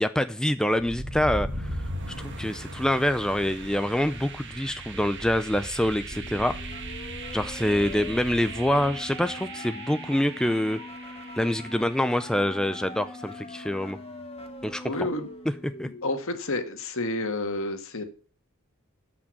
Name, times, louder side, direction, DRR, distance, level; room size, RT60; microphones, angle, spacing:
voice 1, 0.0-1.7 2.1-6.6 7.3-10.8 11.4-14.0 14.6-14.8 15.6-15.9, left 1 dB, 5° left, 10 dB, 0.4 m, -26 dB
sound 1, 0.7-12.6, right 2 dB, 55° right, 1.9 m, -38 dB
sound 2, 6.1-16.1, left 2 dB, 30° left, 1.5 m, -42 dB
voice 2, 14.8-15.3 15.8-18.0, left 2 dB, 65° left, 7 dB, 1.7 m, -30 dB
12.5 x 6.1 x 6.0 m, 0.38 s
head